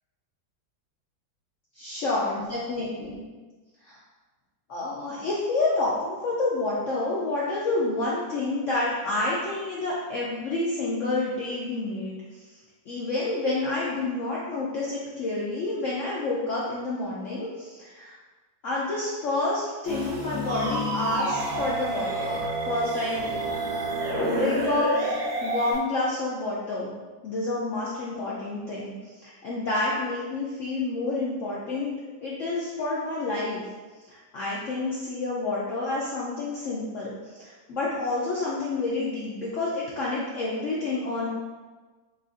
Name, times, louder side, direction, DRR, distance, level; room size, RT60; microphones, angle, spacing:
voice 1, 1.8-3.2 3.9-4.0 4.7-12.4 12.9-18.1 18.6-22.4 22.6-23.2 24.2-26.9 27.2-28.9 29.2-31.9 32.2-33.6 34.1-41.3, left 2 dB, 75° left, -6 dB, 0.7 m, -29 dB
sound 1, 19.8-25.8, left 2 dB, 55° right, 1.1 m, -34 dB
sound 2, 20.5-25.7, right 2 dB, 80° right, 0.6 m, -29 dB
6.2 x 2.4 x 2.5 m, 1.3 s
omnidirectional pair, 2.0 m